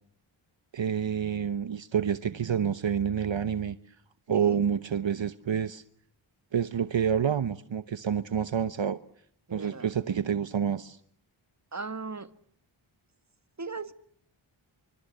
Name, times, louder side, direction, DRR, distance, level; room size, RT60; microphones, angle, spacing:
voice 1, 0.7-3.8 4.3-5.8 6.5-9.0 9.5-11.0, right 8 dB, 65° right, 1.1 m, -28 dB
voice 2, 4.3-4.6 9.5-9.9 11.7-12.3 13.6-13.9, right 4 dB, 35° right, 1.8 m, -37 dB
29.0 x 25.0 x 8.0 m
wide cardioid pair, 65°, 49 cm